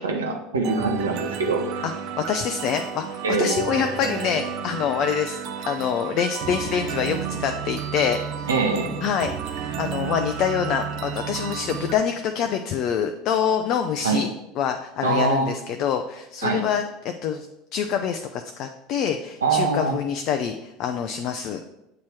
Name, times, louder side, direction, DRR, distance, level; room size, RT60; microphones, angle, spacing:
voice 1, 0.0-1.8 3.2-3.5 8.5-8.9 14.0-14.2 15.0-15.5 16.4-16.6 19.4-19.9, right 3 dB, 85° right, 2 dB, 0.8 m, -23 dB
sound 1, 0.6-11.9, right 8 dB, 55° right, 0.5 m, -31 dB
voice 2, 2.3-5.4 5.6-8.5 9.0-14.3 14.6-17.5 17.7-21.6, left 8 dB, 50° left, 6 dB, 0.4 m, -26 dB
7.3 x 2.9 x 4.6 m, 0.88 s
hypercardioid pair, 75°, 0 cm